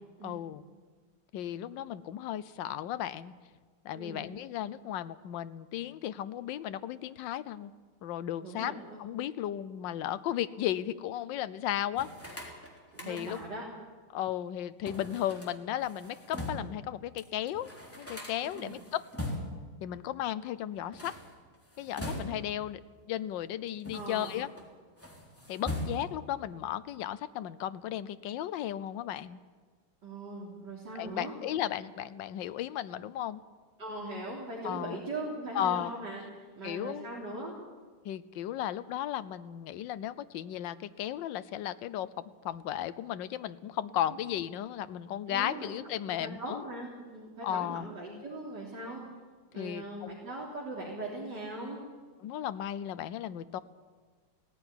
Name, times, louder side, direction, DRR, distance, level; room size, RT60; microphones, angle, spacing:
voice 1, 0.2-0.6 1.3-3.3 3.8-7.7 8.0-12.1 13.1-13.4 14.1-17.7 18.0-19.0 19.8-21.1 21.8-22.8 23.1-24.5 25.5-29.4 30.9-33.4 34.6-35.0 35.5-35.9 36.6-37.1 38.0-46.6 47.4-47.9 49.5-50.3 52.2-53.6, left 11 dB, 70° left, 15 dB, 1.4 m, -35 dB
voice 2, 3.9-4.3 8.4-9.0 12.9-13.6 18.6-18.7 23.9-24.3 30.0-31.3 33.8-36.2 36.6-37.5 45.3-45.7 46.1-49.0 49.5-51.8, right 2 dB, 55° right, -4 dB, 3.9 m, -40 dB
sound 1, 11.9-13.6 14.8-16.8 17.2-17.3 17.5-19.7 20.8-22.6 23.4-24.6 25.0-26.3, left 1 dB, 5° left, 3.5 m, -41 dB
17.5 x 15.5 x 9.9 m, 1.5 s
omnidirectional pair, 2.3 m